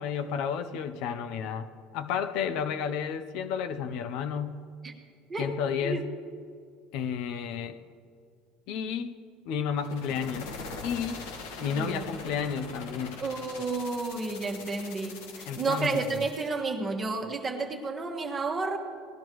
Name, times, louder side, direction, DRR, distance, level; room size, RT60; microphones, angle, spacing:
voice 1, 0.0-1.7 1.9-4.6 5.4-6.1 6.9-7.8 8.7-9.1 9.5-10.5 10.8-11.2 11.6-13.1 15.5-16.2, left 7 dB, 60° left, 9 dB, 0.6 m, -31 dB
sound 1, 9.8-16.6, left 4 dB, 85° left, 1.6 m, -42 dB
voice 2, 11.7-12.0 13.2-18.8, right 3 dB, 20° right, 1 dB, 1.4 m, -31 dB
18.5 x 12.0 x 3.1 m, 2.3 s
cardioid pair, 135°, 0 cm